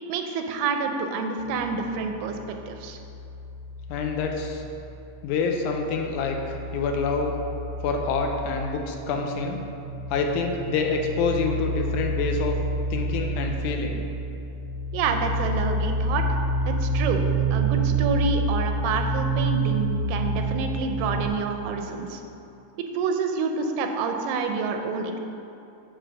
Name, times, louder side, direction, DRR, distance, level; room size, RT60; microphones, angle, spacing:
voice 1, 0.1-3.0 14.9-16.4 16.7-17.2 17.5-22.2 22.9-25.2, right 4 dB, 90° right, 5 dB, 2.1 m, -28 dB
sound 1, 1.4-5.2 5.5-21.3, right 2 dB, 25° right, 0.9 m, -29 dB
voice 2, 3.9-4.6 5.2-7.4 7.8-9.6 10.1-12.6 12.9-14.1, left 4 dB, 80° left, 3 dB, 2.0 m, -27 dB
7.4 x 3.3 x 6.0 m, 2.8 s
omnidirectional pair, 3.6 m